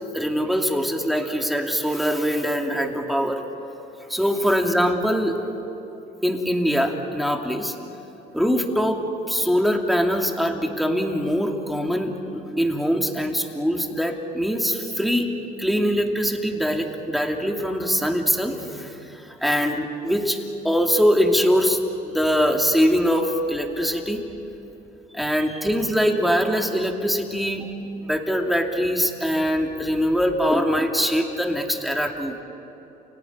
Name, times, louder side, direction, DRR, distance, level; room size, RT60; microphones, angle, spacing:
voice 1, 0.0-3.4 4.1-5.4 6.2-7.7 8.3-15.3 15.6-20.4 20.6-24.2 25.1-27.7 28.0-32.4, equal, ahead, 2 dB, 2.7 m, -23 dB
30.0 x 18.0 x 9.5 m, 3.0 s
cardioid pair, 110°, 17 cm